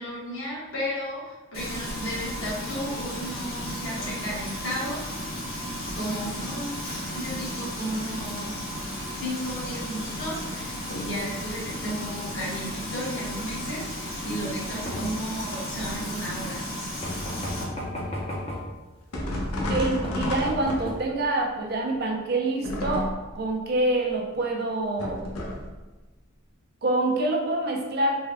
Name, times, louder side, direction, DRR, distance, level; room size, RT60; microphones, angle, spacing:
voice 1, 0.0-5.3 5.8-6.8 7.1-8.6 9.1-16.6, equal, 60° left, -6 dB, 1.2 m, -34 dB
Frying (food), 1.5-17.6, equal, 45° left, 1.4 m, -34 dB
sound 1, 14.9-15.3 17.0-18.7 19.6-19.7 20.0-21.0, left 1 dB, 25° left, 0.5 m, -34 dB
sound 2, 19.1-21.2 22.6-23.4 25.0-25.8, left 1 dB, 90° left, 0.7 m, -30 dB
voice 2, 19.7-23.1 23.3-25.2 26.8-28.1, right 2 dB, 45° right, 1 dB, 0.4 m, -26 dB
3.4 x 2.2 x 3.4 m, 1.2 s
head